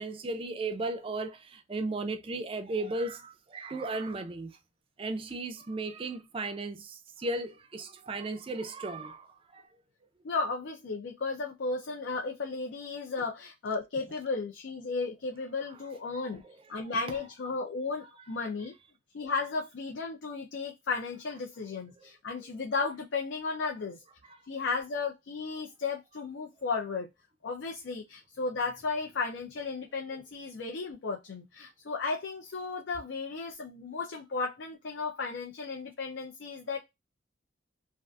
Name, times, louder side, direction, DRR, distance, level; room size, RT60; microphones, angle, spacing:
voice 1, 0.0-4.6 5.0-9.3 9.5-9.6 16.1-16.3 17.1-17.2, right 2 dB, 30° right, 0.3 m, -35 dB
voice 2, 10.2-16.4 16.7-18.8 19.1-24.0 24.5-27.1 27.4-36.8, left 4 dB, 65° left, 0.4 m, -34 dB
2.5 x 2.4 x 2.2 m
head